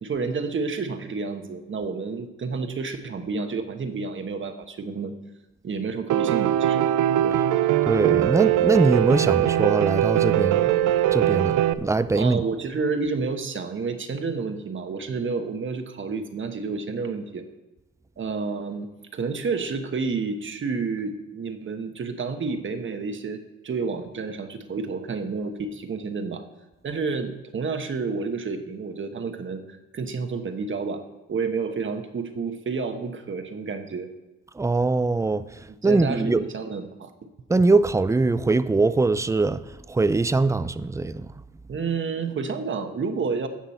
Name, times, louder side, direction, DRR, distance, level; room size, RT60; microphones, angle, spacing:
voice 1, 0.0-5.1 5.6-6.9 7.2-7.4 12.1-17.4 18.2-26.5 26.8-31.0 31.3-34.1 35.7-37.1 41.7-43.5, right 4 dB, 40° right, 1.2 m, -30 dB
Piano, 6.1-11.7, right 12 dB, 80° right, 0.5 m, -21 dB
voice 2, 7.9-10.7 11.1-12.4 34.6-35.4 35.8-36.4 37.5-39.6 39.9-41.3, right 3 dB, 10° right, 0.4 m, -22 dB
16.0 x 6.1 x 4.3 m
cardioid pair, 90°, 30 cm